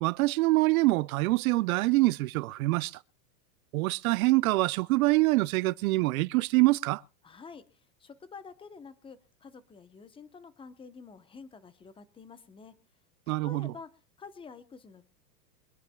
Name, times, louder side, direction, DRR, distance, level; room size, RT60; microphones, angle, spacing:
voice 1, 0.0-2.9 3.7-7.0 13.3-13.7, right 21 dB, 60° right, 0.6 m, -25 dB
voice 2, 7.2-7.6 8.0-12.7 13.3-13.9 14.2-15.0, left 5 dB, 10° left, 0.8 m, -48 dB
24.5 x 10.5 x 2.3 m
supercardioid pair, 140°, 49 cm